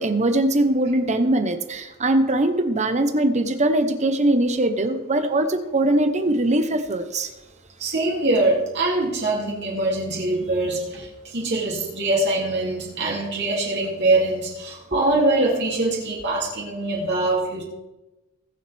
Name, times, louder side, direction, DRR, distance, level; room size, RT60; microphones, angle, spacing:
voice 1, 0.0-7.3 14.9-15.0, right 1 dB, 35° right, 8 dB, 1.0 m, -21 dB
voice 2, 7.8-17.6, right 2 dB, 55° right, -3 dB, 2.9 m, -23 dB
20.5 x 7.2 x 3.5 m, 1.0 s
head